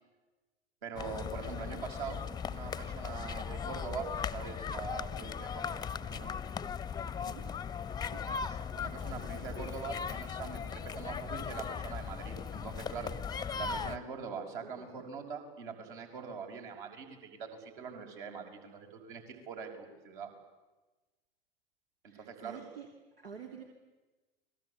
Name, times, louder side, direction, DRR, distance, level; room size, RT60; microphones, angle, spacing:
voice 1, 0.8-6.3 8.4-13.1 13.6-20.3 22.0-22.6, right 5 dB, 60° right, 3 dB, 6.2 m, -43 dB
sound 1, 1.0-14.0, left 6 dB, 15° left, 0.9 m, -38 dB
voice 2, 14.6-15.0 22.1-22.9 23.2-23.6, right 7 dB, 75° right, 2 dB, 3.4 m, -49 dB
30.0 x 22.0 x 8.6 m, 1.2 s
figure-of-eight pair, 90°, 30 cm